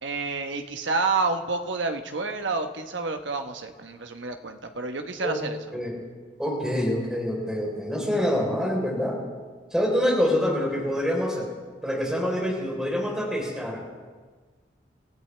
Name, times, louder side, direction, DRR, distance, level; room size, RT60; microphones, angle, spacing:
voice 1, 0.0-5.6, right 3 dB, 85° right, 5 dB, 1.1 m, -29 dB
voice 2, 6.4-9.2 9.7-11.5 11.8-13.8, equal, 5° right, -3 dB, 3.9 m, -26 dB
28.0 x 15.0 x 3.4 m, 1.5 s
head